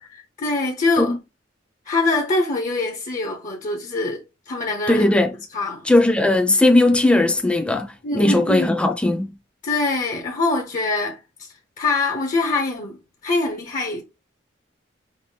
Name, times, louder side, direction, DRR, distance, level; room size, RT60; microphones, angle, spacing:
voice 1, 0.0-1.1 1.9-5.1 5.5-5.8 8.0-8.8 9.6-11.5 11.8-13.0 13.2-14.0, left 3 dB, 45° left, 0.8 m, -24 dB
voice 2, 4.9-5.4 5.8-9.3, left 2 dB, 5° left, 0.7 m, -18 dB
5.8 x 2.0 x 3.3 m
head